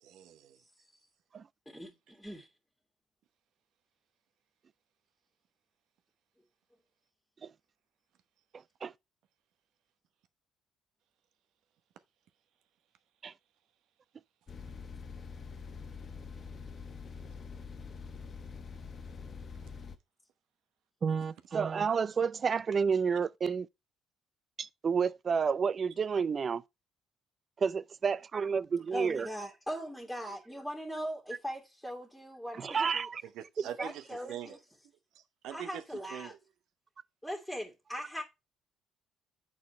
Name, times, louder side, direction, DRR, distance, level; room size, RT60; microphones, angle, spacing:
voice 1, 0.0-0.6 33.2-34.6 35.1-36.4, right 10 dB, 75° right, 0.9 m, -44 dB
voice 2, 1.7-2.5 28.9-33.1 33.8-34.6 35.5-36.3 37.2-38.2, equal, ahead, 2.2 m, -40 dB
sound 1, 14.5-20.0, left 5 dB, 45° left, 1.0 m, -45 dB
voice 3, 21.0-23.7 24.6-26.6 27.6-29.3 32.6-33.2, right 6 dB, 40° right, 0.4 m, -30 dB
8.2 x 4.4 x 4.3 m
supercardioid pair, 75°, 0 cm